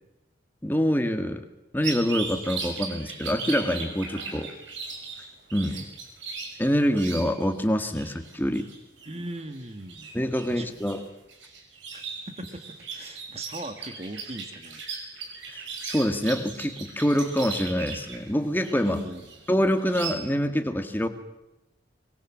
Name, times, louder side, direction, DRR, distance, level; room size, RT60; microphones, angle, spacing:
voice 1, 0.6-1.5 1.7-4.5 5.5-5.8 6.6-8.7 10.1-11.0 15.5-19.1 19.5-21.1, equal, 10° left, 7 dB, 1.9 m, -25 dB
sound 1, 1.8-7.6 7.9-20.1, right 5 dB, 85° right, 5.7 m, -38 dB
voice 2, 9.0-10.1 10.5-10.8 11.9-14.8 19.0-19.3, right 1 dB, 35° right, 8 dB, 1.7 m, -39 dB
24.5 x 22.5 x 7.4 m, 0.93 s
head